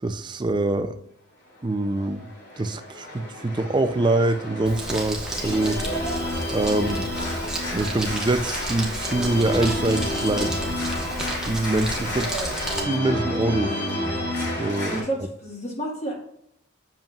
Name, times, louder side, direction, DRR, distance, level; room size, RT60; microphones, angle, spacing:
voice 1, 0.0-0.9 1.6-2.3 2.6-5.8 6.5-7.1 7.7-10.6 11.5-12.3 12.9-13.8 14.6-15.0, right 2 dB, 20° right, 10 dB, 0.4 m, -24 dB
Organ, 1.8-15.0, left 1 dB, 50° left, 2.9 m, -30 dB
Crumpling crinkling, 4.7-12.8, right 1 dB, 5° right, 1.0 m, -33 dB
voice 2, 12.1-12.6 14.6-16.1, right 1 dB, 30° left, -2 dB, 1.4 m, -32 dB
7.5 x 7.2 x 2.3 m, 0.73 s
head